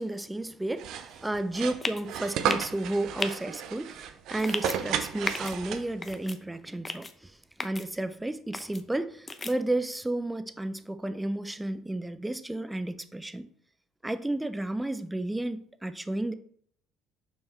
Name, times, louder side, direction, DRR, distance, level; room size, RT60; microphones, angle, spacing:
voice 1, 0.0-7.3 7.6-13.5 14.0-16.3, right 1 dB, 10° right, 0.6 m, -32 dB
sound 1, 0.8-6.1, right 8 dB, 65° right, 0.6 m, -33 dB
sound 2, 1.8-2.0 2.5-2.7 3.2-3.3 4.4-4.8 5.3-5.5 6.0-6.4 6.8-7.1 7.6-7.8 8.5-8.8 9.3-9.5, left 3 dB, 25° left, 0.7 m, -34 dB
6.1 x 4.6 x 4.4 m
hypercardioid pair, 65°, 0 cm